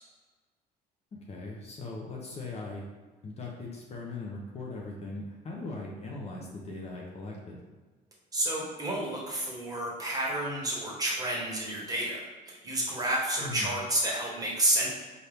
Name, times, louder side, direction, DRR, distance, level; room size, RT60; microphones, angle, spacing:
voice 1, 1.1-2.8 3.2-7.6 13.4-13.7, left 3 dB, 40° left, -2 dB, 0.8 m, -39 dB
voice 2, 8.3-14.9, right 1 dB, 20° right, -4 dB, 1.3 m, -30 dB
4.4 x 2.6 x 3.4 m, 1.3 s
cardioid pair, 110°, 17 cm